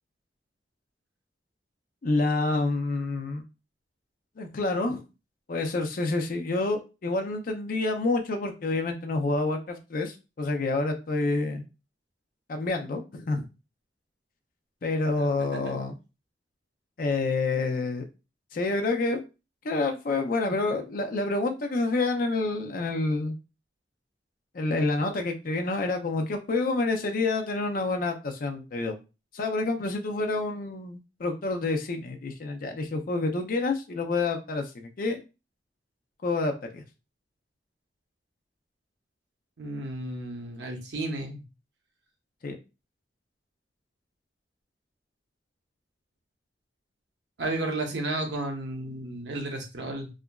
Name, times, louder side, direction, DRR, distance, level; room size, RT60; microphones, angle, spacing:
voice 1, 2.0-3.4 4.4-5.1 5.5-11.6 12.5-13.5 14.8-15.9 17.0-18.0 18.5-19.2 19.6-23.4 24.5-28.9 29.3-35.2 36.2-36.8 42.4-42.6, left 3 dB, 50° left, 5 dB, 0.4 m, -28 dB
voice 2, 15.2-15.7 39.6-41.4 47.4-50.1, right 2 dB, 75° right, 3 dB, 0.7 m, -33 dB
2.8 x 2.4 x 2.2 m, 0.29 s
head